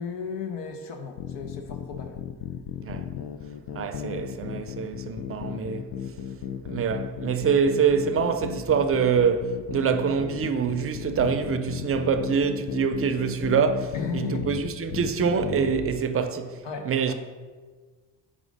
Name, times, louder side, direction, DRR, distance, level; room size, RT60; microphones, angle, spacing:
voice 1, 0.0-2.2 13.9-14.4 16.6-17.1, left 5 dB, 75° left, 0.9 m, -35 dB
sound 1, 1.2-15.9, left 9 dB, 60° left, 0.5 m, -35 dB
voice 2, 2.8-3.2 3.7-5.9 6.6-17.1, right 6 dB, 30° right, 0.5 m, -25 dB
4.9 x 3.7 x 5.2 m
supercardioid pair, 75°, 44 cm